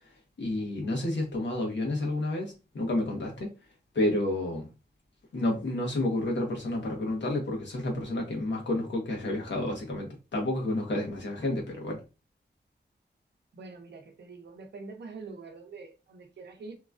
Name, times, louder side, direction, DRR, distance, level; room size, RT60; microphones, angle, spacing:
voice 1, 0.4-3.5 3.9-4.7 5.3-12.0, left 1 dB, 90° left, 1.1 m, -30 dB
voice 2, 13.5-16.8, right 4 dB, 75° right, 0.6 m, -45 dB
2.9 x 2.3 x 2.4 m
wide cardioid pair, 110°, 18 cm